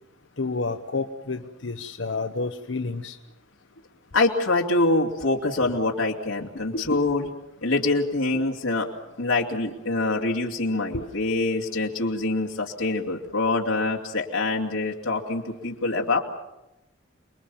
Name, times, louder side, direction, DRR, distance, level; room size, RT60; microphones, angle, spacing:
voice 1, 0.4-3.2 5.6-5.7 6.7-7.0 8.3-8.4 10.9-11.1, left 3 dB, 65° left, 7 dB, 1.0 m, -30 dB
voice 2, 4.1-7.3 7.6-8.9 9.2-16.2, left 2 dB, 85° left, 0 dB, 2.8 m, -25 dB
28.5 x 21.5 x 7.2 m, 0.93 s
head